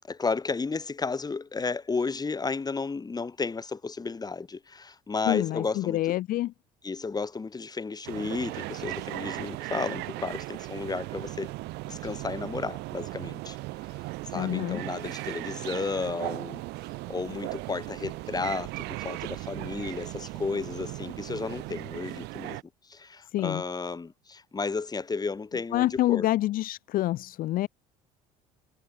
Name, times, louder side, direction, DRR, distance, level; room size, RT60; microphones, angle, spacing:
voice 1, 0.0-6.0 6.8-11.5 11.9-22.6 22.8-26.3, left 4 dB, 20° left, 1.7 m, -33 dB
voice 2, 5.3-6.5 14.3-14.8 23.3-23.6 25.7-27.7, left 15 dB, 50° left, 0.5 m, -27 dB
sound 1, 8.0-22.6, right 22 dB, 70° right, 0.9 m, -37 dB
hypercardioid pair, 70°, 18 cm